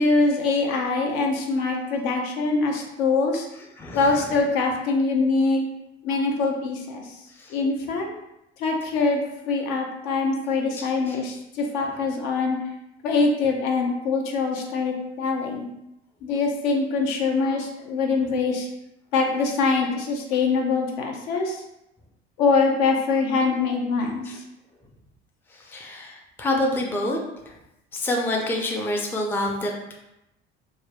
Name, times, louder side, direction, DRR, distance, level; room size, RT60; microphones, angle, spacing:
voice 1, 0.0-3.5 3.9-5.6 6.0-7.0 7.5-8.1 8.6-12.6 13.0-15.6 16.2-18.7 19.1-21.6 22.4-24.4, left 4 dB, 65° left, 1 dB, 0.6 m, -23 dB
voice 2, 3.8-4.2 7.4-7.5 10.8-11.2 24.2-24.4 25.6-27.2 27.9-29.9, left 1 dB, 5° left, 0 dB, 0.4 m, -27 dB
3.3 x 2.1 x 2.2 m, 0.87 s
figure-of-eight pair, 60°, 32 cm